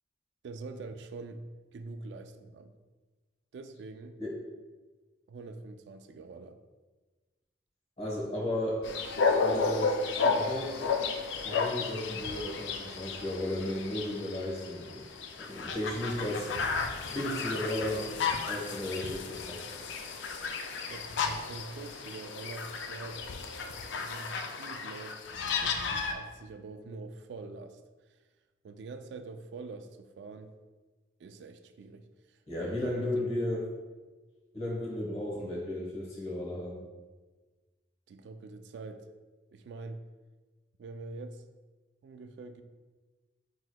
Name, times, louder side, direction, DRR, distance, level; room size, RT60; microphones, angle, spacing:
voice 1, 0.4-1.4 1.7-2.7 3.5-4.2 5.3-6.6 20.8-23.2 24.0-25.2 25.5-28.2 28.6-30.5 31.2-33.3 38.1-39.1 39.5-40.0 40.8-41.4 42.0-42.6, right 3 dB, 75° right, 8 dB, 0.3 m, -45 dB
voice 2, 8.0-8.8 9.4-10.8 11.4-15.0 15.4-16.5 17.0-18.1 18.5-19.6 32.5-33.6 34.5-36.8, left 1 dB, 35° left, -4 dB, 1.0 m, -34 dB
sound 1, 8.8-26.1, left 4 dB, 85° left, 0.4 m, -33 dB
5.7 x 3.0 x 2.2 m, 1.3 s
head